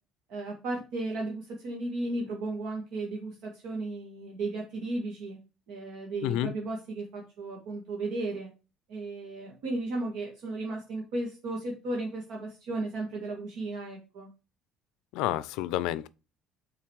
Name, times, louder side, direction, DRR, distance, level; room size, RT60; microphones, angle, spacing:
voice 1, 0.3-5.4 5.7-8.5 8.9-14.3, right 2 dB, 65° right, 1.7 m, -35 dB
voice 2, 6.2-6.5 15.1-16.1, left 14 dB, 75° left, 0.4 m, -29 dB
5.9 x 4.0 x 4.7 m
cardioid pair, 160°, 0 cm